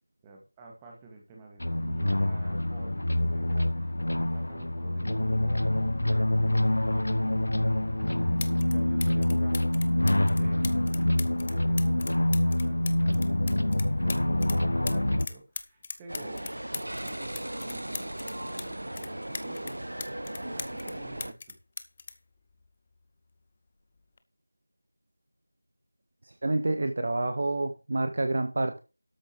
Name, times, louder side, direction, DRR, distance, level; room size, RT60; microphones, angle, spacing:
voice 1, 0.2-6.3 6.6-9.6 10.3-11.2 11.5-12.0 12.3-16.5 16.8-19.8 20.4-21.6, right 3 dB, 10° right, 0 dB, 2.0 m, -50 dB
sound 1, 1.6-15.3, left 1 dB, 60° left, 1.2 m, -26 dB
sound 2, 7.9-8.0 8.4-8.7 9.0-14.6 14.9-18.7 19.0-20.9 21.2-23.0 24.0-24.2, left 4 dB, 20° left, 0.8 m, -39 dB
sound 3, 16.1-21.3, right 1 dB, 65° right, 1.0 m, -37 dB
voice 2, 26.4-28.8, right 2 dB, 35° right, 8 dB, 1.5 m, -28 dB
13.0 x 7.4 x 4.6 m, 0.30 s
figure-of-eight pair, 170°, 0 cm